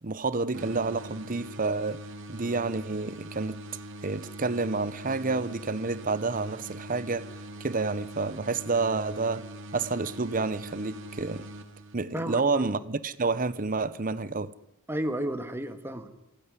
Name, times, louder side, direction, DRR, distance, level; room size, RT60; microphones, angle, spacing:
voice 1, 0.0-2.0 2.3-3.6 4.0-9.5 9.7-11.5 11.9-14.5, right 3 dB, 40° right, 0.9 m, -29 dB
sound 1, 0.5-12.3, right 1 dB, 60° right, 2.4 m, -43 dB
voice 2, 12.1-12.7 14.9-16.1, right 1 dB, 10° right, 1.8 m, -32 dB
26.0 x 17.0 x 9.8 m
head